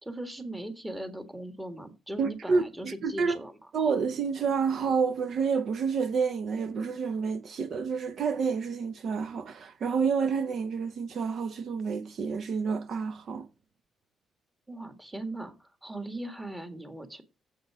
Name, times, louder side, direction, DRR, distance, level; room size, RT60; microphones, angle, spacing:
voice 1, 0.0-3.5 14.7-17.2, right 1 dB, 10° right, 1.8 m, -39 dB
voice 2, 2.2-3.4 3.7-13.5, right 5 dB, 60° right, 0.8 m, -29 dB
7.7 x 6.5 x 4.9 m
cardioid pair, 90°, 0 cm